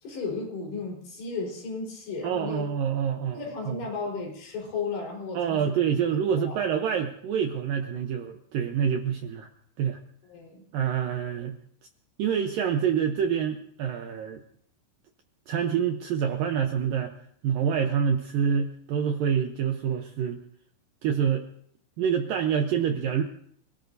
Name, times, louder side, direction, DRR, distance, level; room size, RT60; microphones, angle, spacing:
voice 1, 0.0-2.7 3.3-5.6 6.4-6.6 10.3-10.7, left 4 dB, 75° left, -1 dB, 6.4 m, -34 dB
voice 2, 2.2-3.4 3.7-3.8 5.3-9.5 9.8-10.0 10.7-11.6 12.2-14.4 15.5-17.2 17.4-20.4 21.0-21.5 22.0-23.2, right 8 dB, 75° right, 5 dB, 2.1 m, -26 dB
28.5 x 18.0 x 2.7 m, 0.63 s
omnidirectional pair, 5.0 m